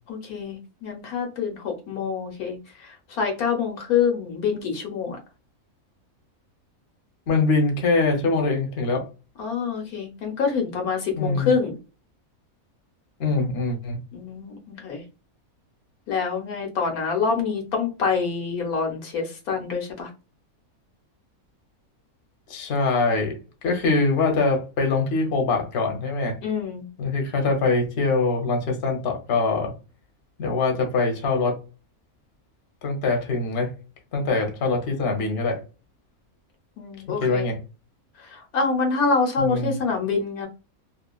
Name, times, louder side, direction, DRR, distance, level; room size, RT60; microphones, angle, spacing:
voice 1, 0.1-5.2 9.4-11.8 14.1-15.0 16.1-20.1 26.4-26.9 36.8-37.5 38.2-40.5, left 5 dB, 90° left, 1.4 m, -26 dB
voice 2, 7.3-9.1 11.2-11.5 13.2-14.0 22.5-23.4 23.6-26.4 27.0-29.7 30.4-31.6 32.8-33.7 34.1-35.6 37.2-37.6 39.4-39.8, left 3 dB, 50° left, 0.9 m, -23 dB
2.8 x 2.4 x 2.2 m
omnidirectional pair, 1.5 m